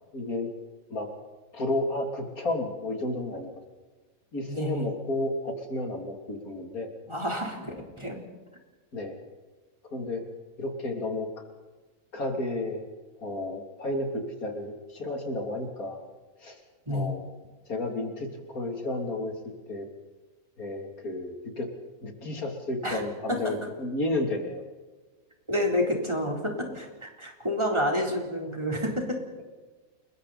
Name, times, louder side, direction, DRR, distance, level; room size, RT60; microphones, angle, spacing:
voice 1, 0.1-0.5 0.9-1.1 1.5-3.5 4.3-6.9 8.9-9.1 9.9-10.2 10.6-11.3 12.1-12.8 13.2-16.0 16.4-16.6 16.9-17.3 17.7-19.3 19.7-19.9 20.6-21.7 22.0-24.6, left 2 dB, 80° left, 3 dB, 3.7 m, -32 dB
voice 2, 4.5-4.9 7.1-8.2 16.9-17.1 22.8-23.4 25.5-29.2, equal, 20° right, 0 dB, 4.0 m, -29 dB
30.0 x 21.5 x 4.3 m, 1.3 s
omnidirectional pair, 1.5 m